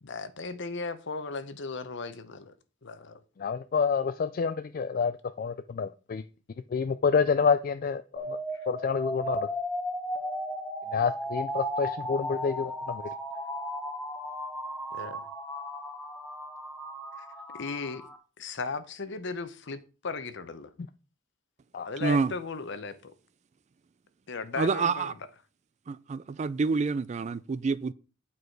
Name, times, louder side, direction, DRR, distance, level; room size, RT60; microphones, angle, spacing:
voice 1, 0.0-2.5 2.8-3.2 14.9-15.2 17.5-18.0 18.4-20.7 21.8-23.1 24.3-25.1, left 4 dB, 60° left, 0.8 m, -36 dB
voice 2, 3.4-6.2 6.7-8.4 8.7-9.5 10.9-13.0 21.7-21.9, left 5 dB, 45° left, 0.3 m, -28 dB
sound 1, 8.2-18.2, equal, 5° left, 1.1 m, -35 dB
voice 3, 22.0-22.3 24.6-25.1 25.9-27.9, right 4 dB, 35° right, 0.3 m, -27 dB
8.7 x 4.8 x 4.6 m
head